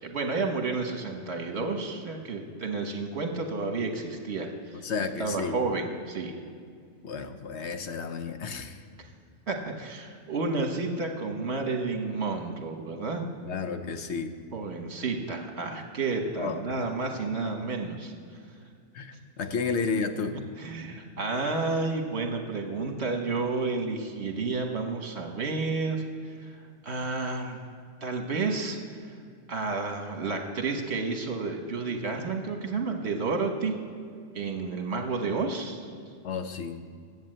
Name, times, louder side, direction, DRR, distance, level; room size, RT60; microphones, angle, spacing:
voice 1, 0.0-4.8 5.2-6.3 9.5-13.2 14.5-18.1 20.6-26.0 26.4-27.6 28.0-28.8 29.1-29.2 29.5-33.7 34.3-35.9, right 3 dB, 60° right, 4 dB, 1.6 m, -31 dB
voice 2, 4.7-5.6 7.0-8.8 13.4-14.3 16.4-16.7 18.9-20.4 36.2-36.8, left 5 dB, 70° left, 8 dB, 1.1 m, -32 dB
10.5 x 8.2 x 7.7 m, 2.2 s
omnidirectional pair, 1.2 m